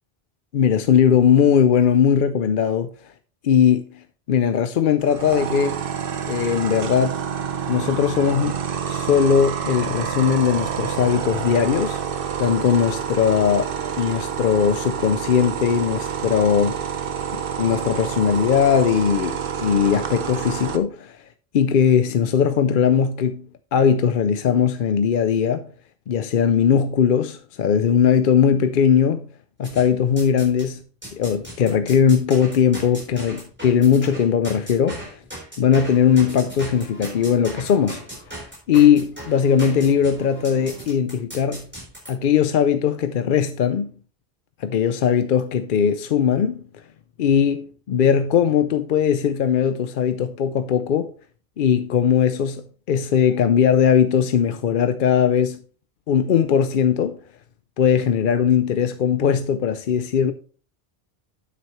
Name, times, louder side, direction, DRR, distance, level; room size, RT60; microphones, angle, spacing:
voice 1, 0.5-2.9 3.4-3.9 4.3-5.8 6.3-7.1 7.7-8.6 8.9-12.0 12.4-13.7 14.0-16.8 17.6-21.2 21.5-23.5 23.7-25.7 26.1-29.3 29.6-30.8 31.1-35.2 35.6-38.0 38.7-41.6 42.1-43.9 44.6-46.6 47.2-51.1 51.6-55.6 56.1-57.2 57.8-60.3, left 8 dB, 60° left, 0.7 m, -19 dB
sound 1, 5.0-20.8, right 7 dB, 65° right, 1.0 m, -28 dB
sound 2, 29.6-30.7 31.0-42.1, right 1 dB, 10° right, 4.1 m, -38 dB
9.4 x 8.2 x 3.1 m
omnidirectional pair, 1.0 m